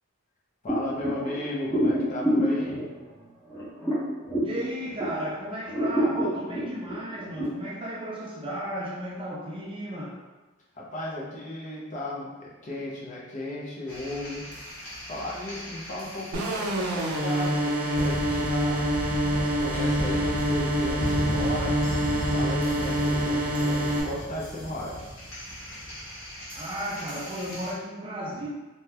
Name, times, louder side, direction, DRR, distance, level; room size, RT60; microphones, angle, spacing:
voice 1, 0.6-2.9 10.7-14.5 15.1-18.9 19.3-21.8 22.3-25.0, left 1 dB, 35° left, -5 dB, 0.6 m, -35 dB
sound 1, 0.7-5.3 5.6-7.5, equal, 15° left, 0.9 m, -28 dB
voice 2, 4.4-10.1 26.5-28.5, right 1 dB, 25° right, -4 dB, 0.4 m, -34 dB
sound 2, 13.9-27.7, equal, 85° left, 1.1 m, -36 dB
sound 3, 16.3-24.0, right 1 dB, 85° right, 0.5 m, -26 dB
2.7 x 2.3 x 3.3 m, 1.2 s
head